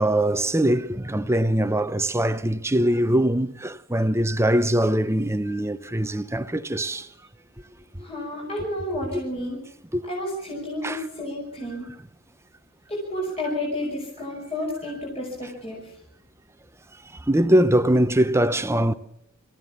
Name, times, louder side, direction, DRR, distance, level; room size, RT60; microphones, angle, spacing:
voice 1, 0.0-7.1 8.0-8.1 9.9-10.0 10.8-11.0 17.3-18.9, right 1 dB, 10° right, 0.8 m, -22 dB
voice 2, 8.0-9.6 10.0-11.9 12.9-15.9, left 1 dB, 30° left, 5.7 m, -31 dB
27.0 x 15.0 x 7.2 m
head